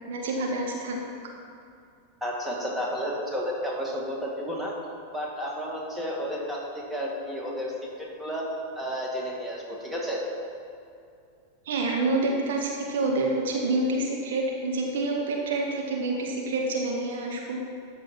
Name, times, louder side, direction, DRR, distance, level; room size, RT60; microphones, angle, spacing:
voice 1, 0.1-1.1 11.7-17.6, right 2 dB, 55° right, 0 dB, 1.2 m, -27 dB
voice 2, 2.2-4.7 5.1-7.7 8.0-8.5 8.8-10.2, equal, 5° right, -3 dB, 2.2 m, -32 dB
13.0 x 6.8 x 4.5 m, 2.5 s
figure-of-eight pair, 90°, 0 cm